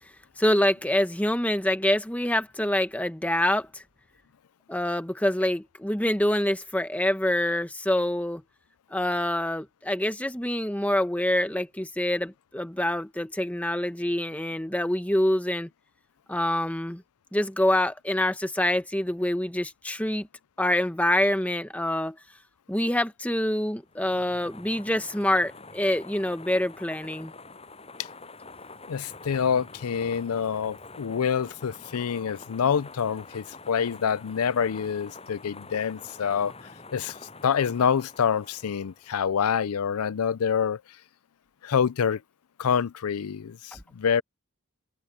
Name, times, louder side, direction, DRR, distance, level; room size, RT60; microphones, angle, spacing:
voice 1, 0.4-3.8 4.7-8.4 8.9-15.7 16.3-17.0 17.3-20.3 20.6-22.2 22.7-27.3, left 1 dB, 5° left, 1.1 m, -26 dB
sound 1, 23.9-39.3, left 3 dB, 25° left, 7.7 m, -46 dB
voice 2, 28.9-36.5 36.9-37.2 37.4-40.8 41.6-42.2 42.6-44.2, left 7 dB, 85° left, 0.5 m, -26 dB
head